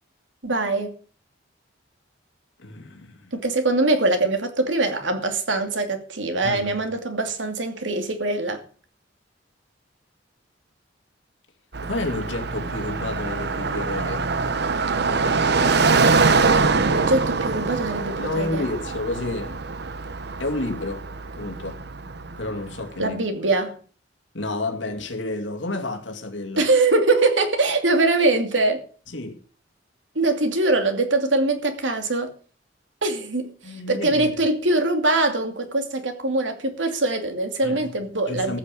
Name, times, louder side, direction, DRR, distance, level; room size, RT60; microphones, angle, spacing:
voice 1, 0.4-0.9 3.3-8.6 16.9-18.7 23.0-23.8 26.6-28.8 30.1-32.3 33.0-33.5 33.9-38.6, right 2 dB, 80° right, 2.7 m, -22 dB
voice 2, 2.6-3.3 6.4-6.8 11.8-14.3 18.2-19.6 20.4-21.8 22.4-23.2 24.3-26.7 29.1-29.4 33.6-34.4 37.6-37.9 38.2-38.6, left 2 dB, 80° left, 2.4 m, -30 dB
Car passing by, 11.7-22.8, right 4 dB, 60° right, 1.0 m, -24 dB
14.5 x 6.9 x 8.4 m
head